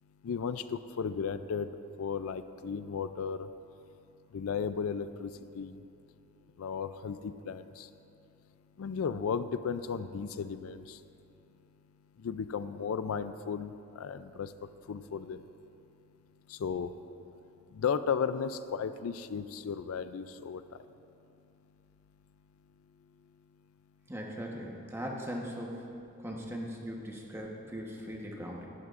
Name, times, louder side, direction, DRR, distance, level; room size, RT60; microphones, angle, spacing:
voice 1, 0.2-1.7 2.0-3.5 4.3-5.8 6.6-7.9 8.8-11.0 12.2-14.5 14.9-15.4 16.5-16.9 17.8-20.6, left 6 dB, 80° left, 12 dB, 0.4 m, -34 dB
voice 2, 24.1-25.9 26.2-28.7, equal, 10° right, -1 dB, 1.1 m, -39 dB
18.0 x 12.0 x 2.5 m, 2.7 s
head